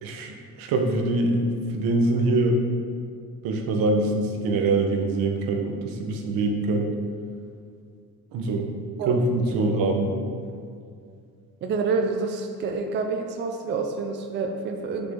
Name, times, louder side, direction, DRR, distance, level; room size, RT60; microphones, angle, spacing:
voice 1, 0.0-2.6 3.4-7.0 8.3-8.7 9.0-10.2, right 2 dB, 80° right, 3 dB, 1.1 m, -24 dB
voice 2, 11.6-15.1, right 4 dB, 35° right, 4 dB, 0.4 m, -28 dB
7.6 x 6.9 x 3.7 m, 2.3 s
cardioid pair, 175°, 35 cm